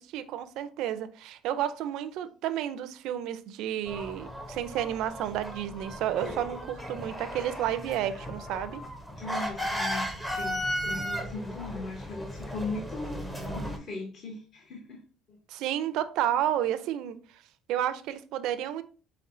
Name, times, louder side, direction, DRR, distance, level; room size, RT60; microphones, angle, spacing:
voice 1, 0.1-8.8 15.5-17.2 17.7-18.8, right 11 dB, 70° right, 0.4 m, -31 dB
sound 1, 3.9-13.8, equal, 5° left, 0.5 m, -36 dB
voice 2, 9.2-15.0 15.3-15.4, left 2 dB, 45° left, 0.8 m, -38 dB
4.2 x 4.1 x 2.5 m
cardioid pair, 170°, 0 cm